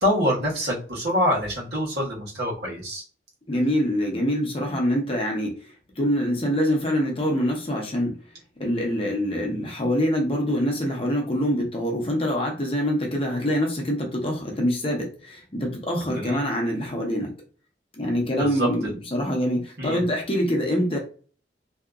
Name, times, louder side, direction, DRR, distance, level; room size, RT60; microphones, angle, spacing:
voice 1, 0.0-3.0 16.1-16.4 18.4-19.0 19.8-20.0, equal, 65° right, -4 dB, 1.2 m, -25 dB
voice 2, 3.5-5.7 6.0-8.1 8.6-17.3 17.9-21.0, equal, 30° left, 0 dB, 0.7 m, -25 dB
2.7 x 2.4 x 2.3 m, 0.40 s
head